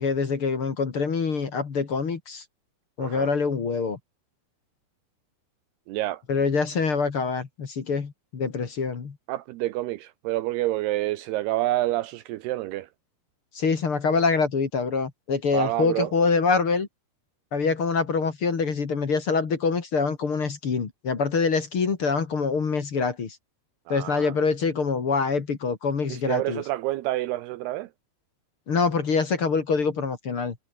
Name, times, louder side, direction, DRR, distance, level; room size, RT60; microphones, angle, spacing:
voice 1, 0.0-2.4 3.0-4.0 6.3-9.1 13.5-16.9 17.5-23.4 23.9-26.6 28.7-30.5, left 5 dB, 40° left, 2.6 m, -25 dB
voice 2, 3.0-3.3 5.9-6.2 9.3-12.9 15.5-16.1 23.9-24.3 26.1-27.9, right 16 dB, 75° right, 2.8 m, -28 dB
omnidirectional pair, 4.8 m